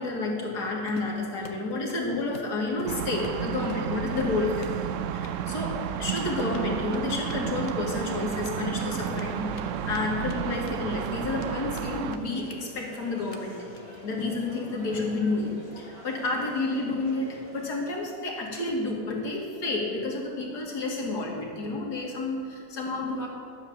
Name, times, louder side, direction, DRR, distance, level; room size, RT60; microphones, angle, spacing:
voice 1, 0.0-4.7 5.1-13.6 14.0-23.3, left 2 dB, 75° left, -1 dB, 2.5 m, -30 dB
Run, 1.0-2.1 2.3-3.8 4.2-4.8 5.1-5.3 6.1-9.6 9.9-10.0 10.3-10.8 11.0-11.9 12.1-12.2 12.5-12.6 12.9-13.0 13.3-13.4 13.7-14.0, left 6 dB, 55° left, 1.1 m, -46 dB
sound 1, 2.9-12.2, right 9 dB, 70° right, 0.7 m, -32 dB
sound 2, 8.6-17.7, equal, 20° left, 2.5 m, -47 dB
12.5 x 7.4 x 7.3 m, 2.2 s
omnidirectional pair, 1.8 m